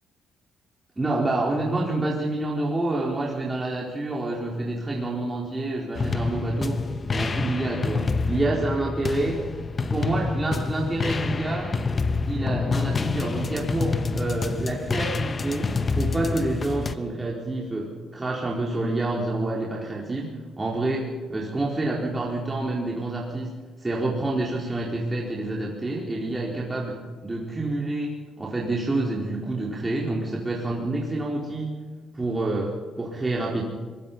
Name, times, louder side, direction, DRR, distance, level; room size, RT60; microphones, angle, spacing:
voice 1, 1.0-6.8 7.1-9.3 9.9-11.7 12.2-31.8 32.1-33.6, right 2 dB, 20° right, -4 dB, 4.5 m, -28 dB
sound 1, 6.0-17.0, left 4 dB, 35° left, 1.0 m, -27 dB
23.5 x 21.5 x 5.6 m, 1.4 s
cardioid pair, 90°, 0 cm